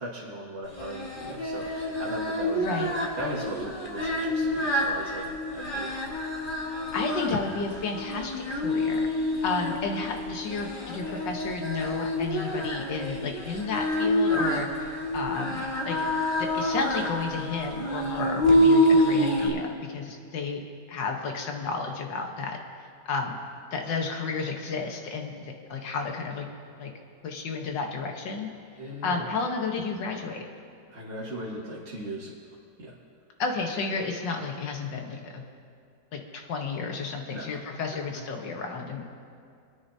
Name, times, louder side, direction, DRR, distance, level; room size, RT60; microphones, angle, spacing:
voice 1, 0.0-2.9 3.2-6.0 28.8-29.3 30.9-32.3 32.8-32.9 37.3-37.6, right 1 dB, 40° right, -7 dB, 1.8 m, -38 dB
Singing, 0.7-19.5, left 1 dB, 30° left, 1.6 m, -27 dB
voice 2, 2.6-2.9 6.9-9.1 9.4-16.0 16.4-20.6 20.9-22.6 23.1-23.4 23.7-26.5 26.8-26.9 27.2-28.5 29.0-30.5 33.4-35.4 36.1-39.1, left 4 dB, 85° left, 2 dB, 1.9 m, -32 dB
26.0 x 9.6 x 2.8 m, 2.4 s
omnidirectional pair, 1.9 m